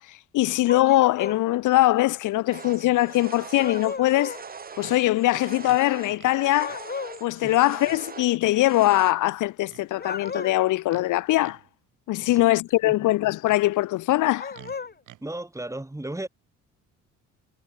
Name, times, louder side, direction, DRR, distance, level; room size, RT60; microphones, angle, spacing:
voice 1, 0.0-4.4 4.8-6.9 7.2-11.6 12.1-14.5, left 17 dB, 80° left, 0.8 m, -22 dB
sound 1, 0.7-1.5 3.6-4.4 6.6-7.2 9.9-10.7 14.4-14.9, left 5 dB, 30° left, 3.0 m, -34 dB
sound 2, 2.5-9.1, right 5 dB, 30° right, 1.3 m, -42 dB
Livestock farm animals working animals, 4.8-5.0 5.7-6.4 6.7-6.8 7.5-8.0 8.4-8.6 9.7-10.4 10.9-11.1 11.4-11.7 13.1-13.6 14.5-15.2, right 15 dB, 90° right, 3.4 m, -50 dB
voice 2, 15.2-16.3, right 1 dB, 10° right, 5.9 m, -35 dB
cardioid pair, 90°, 30 cm